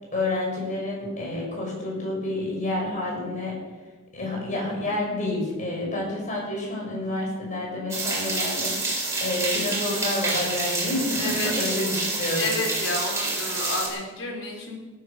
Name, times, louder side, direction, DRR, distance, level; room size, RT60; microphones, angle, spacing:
voice 1, 0.1-3.6 4.1-12.5, left 2 dB, 40° left, -2 dB, 6.7 m, -29 dB
sound 1, 7.9-13.9, right 2 dB, 15° right, 4.6 m, -28 dB
voice 2, 11.2-11.5 12.3-14.8, left 2 dB, 80° left, 0 dB, 4.6 m, -30 dB
17.0 x 10.0 x 6.6 m, 1.2 s
head